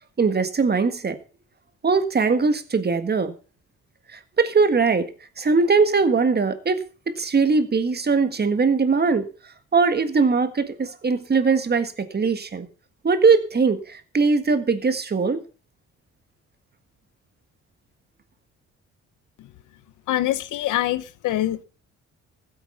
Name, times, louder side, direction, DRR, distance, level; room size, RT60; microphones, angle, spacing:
voice 1, 0.2-1.2 1.8-3.3 4.1-5.1 5.4-9.3 9.7-12.7 13.0-15.4, right 4 dB, 35° right, 1.7 m, -21 dB
voice 2, 20.1-21.6, left 14 dB, 85° left, 0.9 m, -24 dB
15.0 x 8.3 x 5.6 m
cardioid pair, 90°, 30 cm